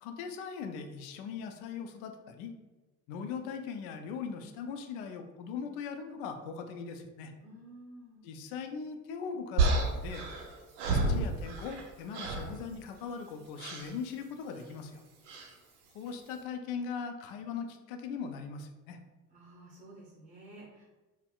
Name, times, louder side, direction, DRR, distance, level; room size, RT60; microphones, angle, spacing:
voice 1, 0.0-2.5 3.1-7.3 8.2-10.3 10.9-15.0 15.9-19.0, left 6 dB, 50° left, 6 dB, 0.4 m, -40 dB
voice 2, 7.4-8.2 19.3-20.8, right 1 dB, 15° right, -4 dB, 0.8 m, -52 dB
sound 1, 9.6-11.9 12.1-12.5 13.6-13.9 15.3-15.5, right 3 dB, 60° right, 0.7 m, -30 dB
4.1 x 2.1 x 2.3 m, 1.2 s
figure-of-eight pair, 65°, 49 cm